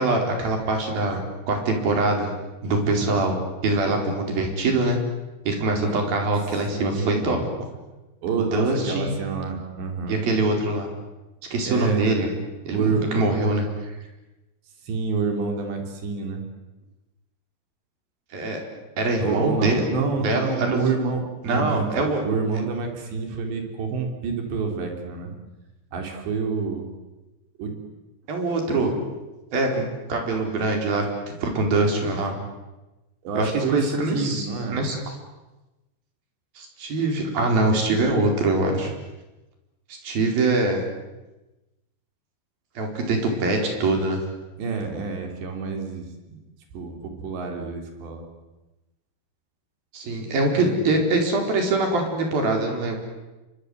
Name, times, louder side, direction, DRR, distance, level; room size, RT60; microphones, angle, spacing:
voice 1, 0.0-2.3 2.6-3.4 3.6-5.0 5.5-7.4 8.5-9.1 10.1-10.9 11.5-12.3 12.6-14.0 18.3-18.6 19.0-19.8 20.2-20.8 21.4-22.2 28.3-29.0 29.5-32.4 33.3-35.0 36.6-38.9 40.0-40.8 42.8-44.2 49.9-53.0, right 2 dB, 55° right, 3 dB, 6.3 m, -23 dB
voice 2, 5.8-6.2 6.7-7.4 8.2-10.2 11.6-12.1 12.7-13.0 14.8-16.4 19.2-25.3 25.9-26.9 27.6-27.8 28.7-28.9 33.2-34.8 44.6-46.4 46.7-48.3 50.5-50.8, right 4 dB, 70° right, 3 dB, 5.7 m, -28 dB
29.0 x 25.0 x 8.1 m, 1.1 s
omnidirectional pair, 5.2 m